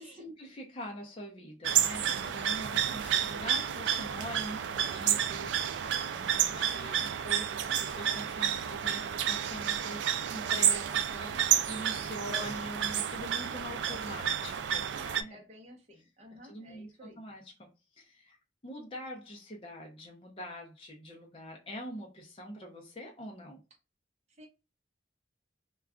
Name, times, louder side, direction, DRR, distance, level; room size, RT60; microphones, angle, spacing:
voice 1, 0.0-15.4 16.4-18.4 18.6-23.6, equal, 30° left, 0.5 m, -44 dB
sound 1, 1.6-15.2, right 9 dB, 80° right, 0.3 m, -30 dB
voice 2, 6.5-7.1 12.2-12.6 13.8-14.3 15.3-17.2 24.3-24.5, equal, 35° right, 0.8 m, -52 dB
2.3 x 2.3 x 3.6 m
head